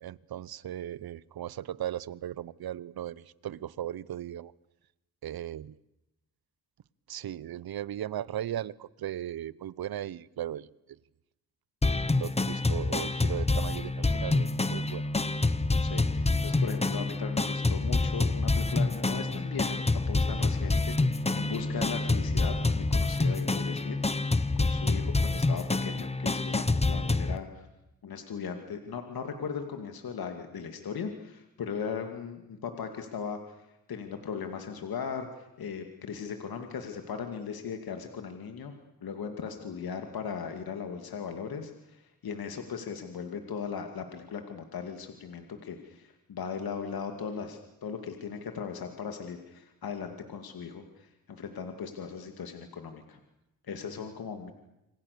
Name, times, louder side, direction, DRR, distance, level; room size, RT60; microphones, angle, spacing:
voice 1, 0.0-4.5 5.2-5.7 7.1-10.7 11.9-15.0, right 11 dB, 70° right, 21 dB, 0.9 m, -37 dB
sound 1, 11.8-27.4, left 3 dB, 15° left, 1.2 m, -27 dB
voice 2, 15.8-24.0 24.6-27.7 28.0-38.7 39.0-53.2 53.6-54.5, left 6 dB, 70° left, 5 dB, 2.6 m, -38 dB
28.0 x 26.0 x 6.9 m, 0.93 s
cardioid pair, 80°, 38 cm